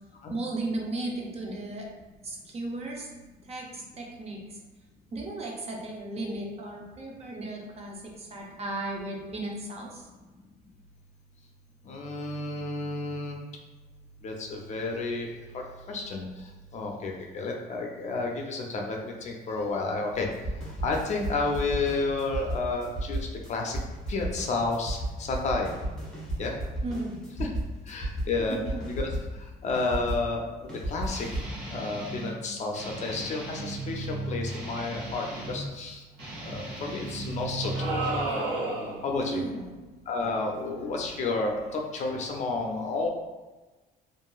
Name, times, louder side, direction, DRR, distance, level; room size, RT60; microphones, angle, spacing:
voice 1, 0.3-1.9 2.2-3.1 3.5-4.6 5.1-10.1 26.8-27.2 28.5-28.8 39.2-39.8, right 2 dB, 40° right, -1 dB, 0.6 m, -35 dB
voice 2, 11.9-13.4 14.2-15.3 15.5-16.2 16.7-20.3 20.8-23.2 23.5-23.8 24.1-25.7 26.4-26.5 27.4-27.5 27.9-28.6 29.0-29.1 29.6-31.3 31.7-36.0 36.4-37.9 39.0-39.4 40.1-43.1, left 3 dB, 45° left, 1 dB, 0.5 m, -31 dB
sound 1, 20.1-30.3 30.7-31.6, right 1 dB, 5° left, 1.0 m, -34 dB
Guitar, 31.0-32.4 32.7-35.7 36.1-38.3, right 1 dB, 65° right, 1.0 m, -36 dB
sound 2, 37.8-39.1, right 2 dB, 90° right, 0.8 m, -30 dB
2.8 x 2.5 x 2.3 m, 1.2 s
cardioid pair, 110°, 17 cm